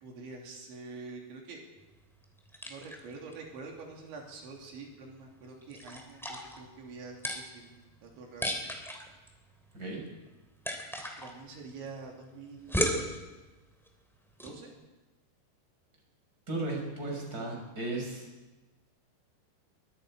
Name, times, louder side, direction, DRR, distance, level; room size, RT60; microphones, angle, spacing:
voice 1, 0.0-1.6 2.7-8.6 11.2-13.0 14.4-14.7, right 4 dB, 80° right, 0 dB, 5.3 m, -46 dB
sound 1, 1.8-14.6, equal, ahead, 1.8 m, -39 dB
voice 2, 16.5-18.3, right 2 dB, 20° right, 0 dB, 6.2 m, -35 dB
23.0 x 23.0 x 5.1 m, 1.1 s
omnidirectional pair, 5.2 m